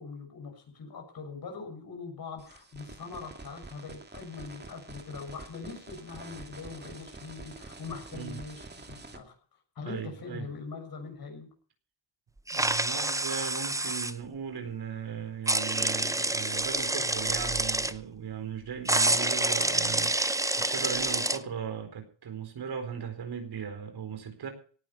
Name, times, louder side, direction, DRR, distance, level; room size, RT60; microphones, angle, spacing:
voice 1, 0.0-9.3 9.7-11.5, left 4 dB, 55° left, 4 dB, 6.7 m, -42 dB
sound 1, 2.4-9.2, right 3 dB, 25° right, 2.4 m, -47 dB
voice 2, 9.8-10.5 12.5-24.5, right 7 dB, 65° right, 6 dB, 4.4 m, -38 dB
sound 2, 12.5-14.1 15.5-17.9 18.9-21.4, right 2 dB, 10° right, 0.7 m, -28 dB
18.0 x 9.6 x 5.7 m, 0.42 s
cardioid pair, 100°, 42 cm